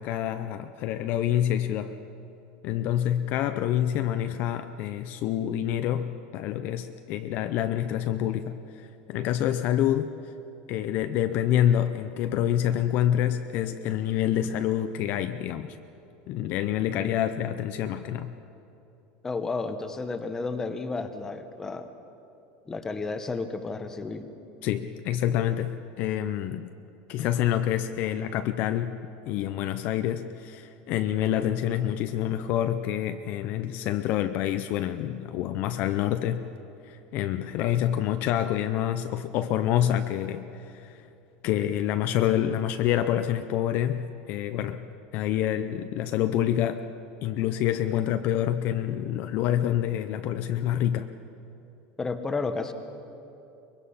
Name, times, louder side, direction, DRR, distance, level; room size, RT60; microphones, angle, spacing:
voice 1, 0.0-2.0 2.6-10.3 10.7-15.8 16.3-18.3 24.6-26.7 27.1-28.9 29.3-36.4 36.8-41.0 41.4-44.8 45.1-46.8 47.2-51.1, left 11 dB, 40° left, 9 dB, 0.6 m, -27 dB
voice 2, 19.2-21.9 22.7-24.3 52.0-52.7, left 3 dB, 10° left, 8 dB, 0.9 m, -32 dB
23.5 x 21.5 x 5.6 m, 2.8 s
supercardioid pair, 175°, 5 cm